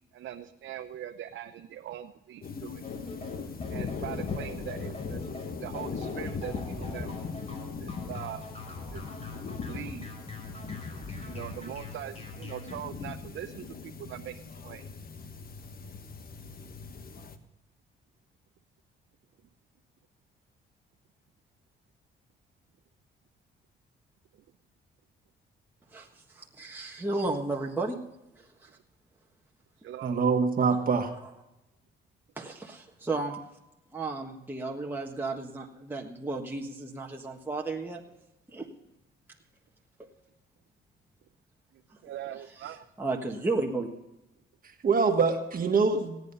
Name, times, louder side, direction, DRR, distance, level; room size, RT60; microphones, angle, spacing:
voice 1, 0.1-2.8 3.7-5.3 5.6-7.2 7.8-8.4 8.9-9.2 9.6-10.1 11.2-14.9 29.8-30.2 41.7-42.8, right 11 dB, 70° right, 6 dB, 0.8 m, -41 dB
sound 1, 2.4-17.4, left 5 dB, 50° left, 1.3 m, -39 dB
sound 2, 2.8-12.8, left 2 dB, 30° left, 5.3 m, -44 dB
voice 2, 25.9-28.0 28.3-28.7 32.4-33.4 33.9-38.0 38.5-38.7 43.0-43.9, right 3 dB, 10° right, -1 dB, 1.5 m, -33 dB
voice 3, 30.0-31.1 44.6-46.2, right 5 dB, 45° right, 5 dB, 1.5 m, -25 dB
17.0 x 9.7 x 5.5 m, 0.92 s
cardioid pair, 90°, 20 cm